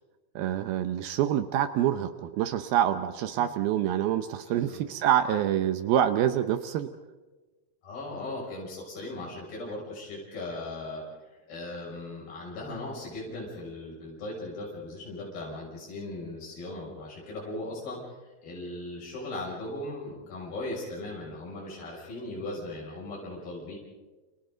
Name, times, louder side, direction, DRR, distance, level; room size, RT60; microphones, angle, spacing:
voice 1, 0.4-6.9, right 11 dB, 75° right, 10 dB, 2.5 m, -26 dB
voice 2, 4.5-4.8 7.8-11.2 11.5-23.8, left 2 dB, 65° left, -4 dB, 8.3 m, -38 dB
29.5 x 29.5 x 3.9 m, 1.2 s
omnidirectional pair, 4.6 m